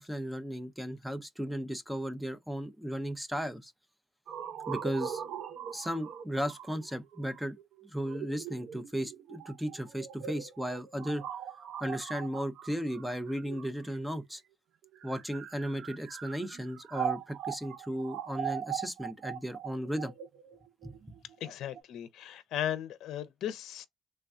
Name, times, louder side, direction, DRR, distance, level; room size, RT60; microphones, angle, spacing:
voice 1, 0.0-3.7 4.7-5.2 5.7-7.5 7.8-11.2 11.8-14.4 15.0-20.1 20.8-20.9, equal, 5° right, 0.5 m, -35 dB
sound 1, 4.3-14.1 14.9-21.8, right 8 dB, 70° right, 0.5 m, -40 dB
voice 2, 21.4-23.9, left 11 dB, 75° left, 0.5 m, -36 dB
3.3 x 2.1 x 2.4 m
cardioid pair, 135°, 0 cm